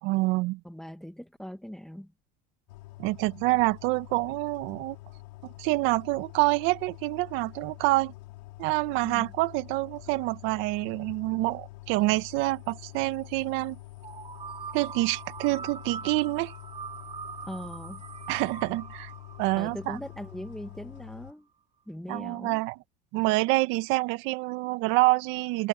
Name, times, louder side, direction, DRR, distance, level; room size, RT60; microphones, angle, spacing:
voice 1, 0.0-0.6 3.0-5.0 5.4-8.1 8.6-13.8 14.7-16.5 18.3-19.1 19.4-20.0 22.1-22.8 23.1-25.7, right 22 dB, 70° right, 1.7 m, -27 dB
voice 2, 0.6-2.1 9.0-9.3 17.4-18.0 19.6-21.5 21.9-22.6, equal, ahead, 1.8 m, -40 dB
sound 1, 2.7-21.3, left 19 dB, 85° left, 5.9 m, -46 dB
sound 2, 14.0-20.8, right 6 dB, 30° right, 3.3 m, -42 dB
supercardioid pair, 90°, 21 cm